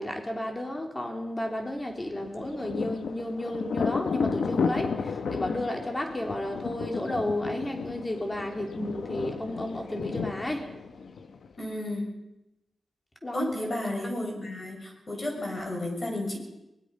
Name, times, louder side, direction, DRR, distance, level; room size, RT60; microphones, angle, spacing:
voice 1, 0.0-10.7 13.2-13.5, left 1 dB, 15° left, 3 dB, 3.2 m, -32 dB
Thunder, 2.1-11.6, left 5 dB, 70° left, 1.2 m, -33 dB
voice 2, 11.6-12.1 13.3-16.4, left 1 dB, 35° left, 0 dB, 6.4 m, -32 dB
23.5 x 20.5 x 5.4 m, 0.91 s
wide cardioid pair, 140°, 0 cm